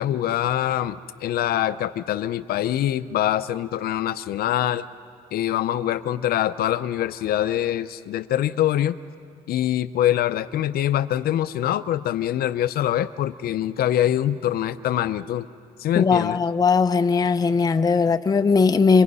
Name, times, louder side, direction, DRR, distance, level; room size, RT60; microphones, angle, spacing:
voice 1, 0.0-4.8 5.3-8.9 9.5-15.5 15.8-16.4, left 12 dB, 65° left, 0.7 m, -24 dB
voice 2, 16.0-19.0, left 5 dB, 20° left, 0.7 m, -19 dB
29.0 x 24.0 x 5.5 m
cardioid pair, 110°, 17 cm